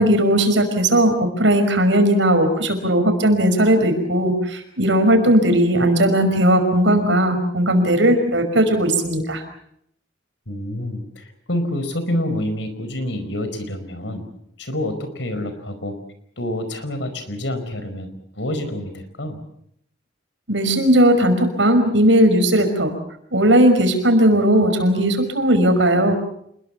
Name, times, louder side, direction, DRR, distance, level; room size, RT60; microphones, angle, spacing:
voice 1, 0.0-9.4 20.5-22.9 23.3-26.1, right 1 dB, 80° right, 7 dB, 5.5 m, -17 dB
voice 2, 10.5-14.2 14.6-15.9 16.4-19.4, left 1 dB, 80° left, 10 dB, 4.9 m, -27 dB
27.5 x 21.5 x 7.1 m, 0.72 s
head